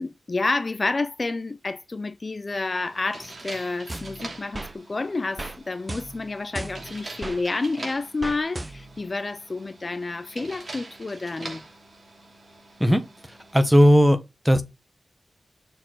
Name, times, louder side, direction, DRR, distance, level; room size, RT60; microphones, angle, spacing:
voice 1, 0.0-11.6, left 3 dB, 35° left, 0.4 m, -29 dB
sound 1, 2.5-13.7, right 2 dB, 45° right, 2.7 m, -44 dB
sound 2, 3.9-4.8 5.4-5.6 5.9-7.4 8.2-9.0, right 2 dB, 20° right, 0.6 m, -36 dB
voice 2, 12.8-14.2 14.4-14.6, equal, 5° right, 1.1 m, -17 dB
6.5 x 4.4 x 4.5 m
wide cardioid pair, 120°, 0 cm